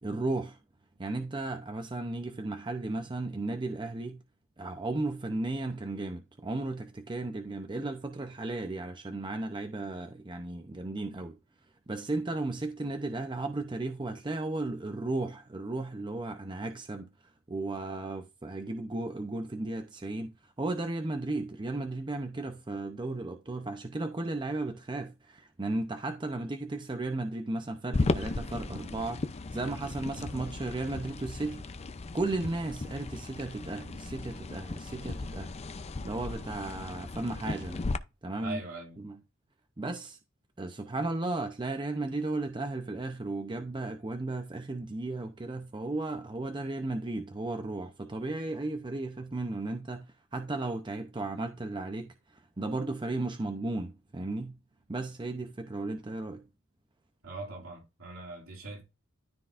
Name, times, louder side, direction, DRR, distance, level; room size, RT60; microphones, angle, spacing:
voice 1, 0.0-0.6 1.0-4.2 4.6-11.4 11.9-31.7 32.1-35.5 36.0-37.8 38.2-38.6 39.0-39.2 39.8-40.2 40.6-54.6 54.9-56.4, right 2 dB, 25° right, 0.6 m, -35 dB
sound 1, 27.9-38.0, left 3 dB, 30° left, 0.5 m, -36 dB
voice 2, 38.4-39.0 57.2-58.8, right 2 dB, 85° right, 2.6 m, -41 dB
13.0 x 4.5 x 2.5 m
head